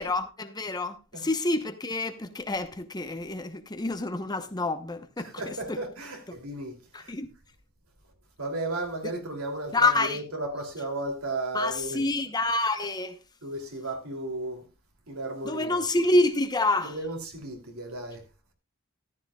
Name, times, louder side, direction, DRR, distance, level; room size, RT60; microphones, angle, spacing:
voice 1, 0.0-5.8 6.9-7.3 9.0-9.1 9.7-10.2 11.5-13.2 15.4-17.0, left 2 dB, 20° left, 1.0 m, -27 dB
voice 2, 5.2-7.1 8.4-12.0 13.4-14.7 15.1-15.8 16.8-18.2, right 2 dB, 85° right, 3.0 m, -34 dB
14.0 x 12.5 x 2.4 m
head